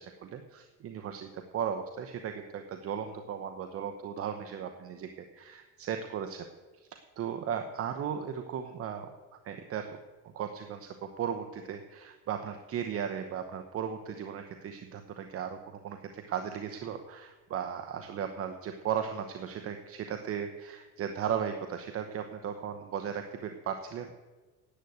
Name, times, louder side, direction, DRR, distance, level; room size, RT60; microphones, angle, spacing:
voice 1, 0.0-6.5 6.7-6.9 7.2-9.1 9.4-10.0 10.3-24.1, right 8 dB, 50° right, 6 dB, 0.9 m, -36 dB
9.9 x 8.0 x 9.3 m, 1.3 s
cardioid pair, 130°, 30 cm